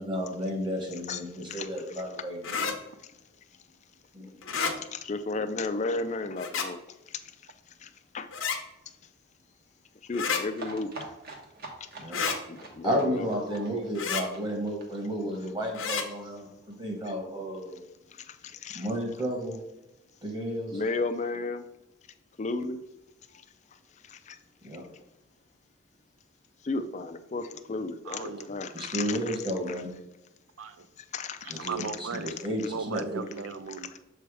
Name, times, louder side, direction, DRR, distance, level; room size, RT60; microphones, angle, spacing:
voice 1, 0.0-2.5 4.1-4.4 12.0-12.2 12.6-17.8 18.7-19.6 20.2-20.8 24.6-24.8 28.7-29.9 31.5-33.2, equal, 20° right, 2 dB, 1.3 m, -32 dB
sound 1, 2.4-2.7 4.4-4.7 6.4-6.7 8.3-8.6 10.1-10.4 12.1-12.4 13.9-14.2 15.7-16.0, left 6 dB, 80° left, 0.9 m, -29 dB
voice 2, 2.5-3.0 13.5-13.8 28.1-28.5 30.6-30.9 31.4-32.3 32.7-33.9, right 5 dB, 75° right, 12 dB, 0.5 m, -38 dB
voice 3, 4.7-6.8 7.8-7.9 8.1-8.3 10.1-10.9 12.5-13.3 17.0-17.1 18.3-18.9 20.7-21.6 22.4-22.8 24.1-24.4 26.6-29.4 31.1-31.9 33.8-34.0, left 3 dB, 35° left, 9 dB, 0.4 m, -33 dB
sound 2, 10.6-16.1 16.4-16.5 16.7-16.8 17.0-17.1, right 2 dB, 45° right, 1.2 m, -44 dB
7.0 x 3.4 x 4.7 m, 0.92 s
head